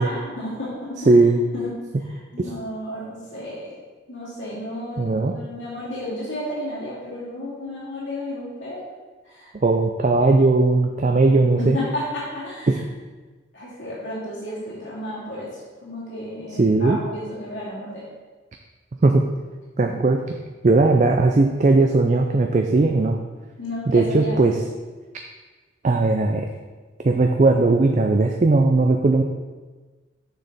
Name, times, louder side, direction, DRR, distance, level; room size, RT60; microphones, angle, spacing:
voice 1, 0.0-1.1 1.5-1.7 2.0-3.7 4.1-8.8 9.2-9.5 11.6-12.8 13.5-18.0 19.8-19.9 23.6-24.6, left 1 dB, 85° left, -8 dB, 2.4 m, -33 dB
voice 2, 1.1-1.4 2.4-2.5 5.0-5.4 9.6-11.8 12.7-12.8 16.5-17.0 19.0-19.2 19.8-20.2 20.6-23.2 23.9-24.6 25.8-26.5 27.0-29.2, right 3 dB, 40° right, 3 dB, 0.4 m, -18 dB
6.5 x 6.4 x 4.1 m, 1.3 s
head